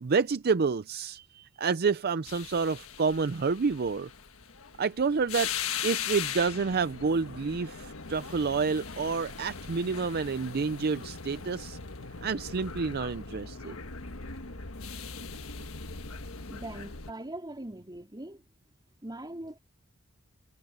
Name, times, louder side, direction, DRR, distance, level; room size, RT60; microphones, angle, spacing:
voice 1, 0.0-4.1 4.8-5.5 5.8-11.8 12.2-13.8, right 5 dB, 50° right, 0.5 m, -29 dB
sound 1, 2.3-17.1, left 6 dB, 75° left, 1.5 m, -39 dB
voice 2, 16.5-18.4 19.0-19.6, right 1 dB, 20° right, 4.0 m, -41 dB
head